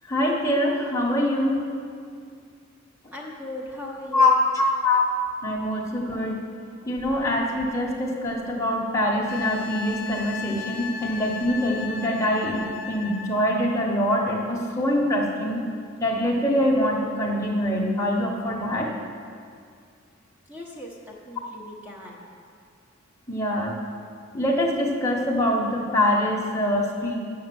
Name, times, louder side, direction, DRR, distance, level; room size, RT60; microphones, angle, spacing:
voice 1, 0.1-1.7 4.1-5.1 5.4-6.4 6.8-15.7 16.0-18.9 23.3-23.8 24.3-27.1, left 1 dB, 15° left, -3 dB, 1.2 m, -24 dB
voice 2, 3.1-4.4 20.4-22.3, left 1 dB, 10° right, -3 dB, 1.2 m, -38 dB
Wind instrument woodwind instrument, 9.3-13.5 16.2-16.3, left 6 dB, 45° left, 0.6 m, -36 dB
6.7 x 6.6 x 7.6 m, 2.2 s
head